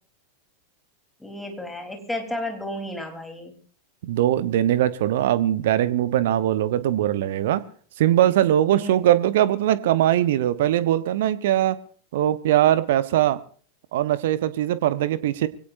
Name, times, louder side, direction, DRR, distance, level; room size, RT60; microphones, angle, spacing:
voice 1, 1.2-3.5 8.7-9.0, left 1 dB, 5° left, 4 dB, 3.9 m, -32 dB
voice 2, 4.0-7.7 8.0-11.8 12.1-13.4 13.9-15.5, right 12 dB, 55° right, 16 dB, 1.0 m, -21 dB
25.0 x 17.0 x 2.7 m, 0.43 s
figure-of-eight pair, 90°, 0 cm